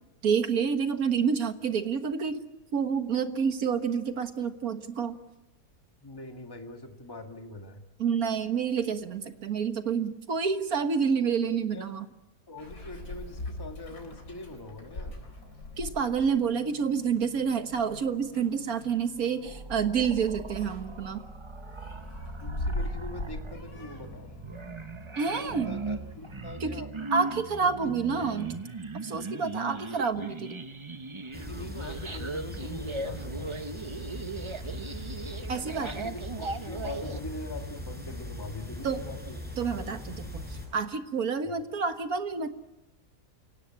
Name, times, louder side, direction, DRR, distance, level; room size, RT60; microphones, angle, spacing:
voice 1, 0.2-2.5 2.7-5.2 8.0-12.1 15.8-21.2 25.2-25.7 26.6-26.8 27.1-28.6 29.0-30.6 35.5-36.1 38.8-39.0 39.6-42.5, right 6 dB, 60° right, 8 dB, 1.9 m, -28 dB
voice 2, 6.0-7.9 11.7-11.9 12.5-15.3 22.4-24.5 25.3-26.9 27.6-27.9 28.2-28.6 31.3-33.6 35.8-39.5 41.4-41.5, left 2 dB, 15° left, 4 dB, 1.9 m, -43 dB
Meow, 12.6-26.5, left 2 dB, 65° left, 4.6 m, -41 dB
sound 1, 19.5-37.2, right 3 dB, 25° right, 0.6 m, -39 dB
sound 2, 31.3-40.7, left 1 dB, 5° right, 7.4 m, -40 dB
29.0 x 17.5 x 8.7 m, 1.0 s
omnidirectional pair, 1.7 m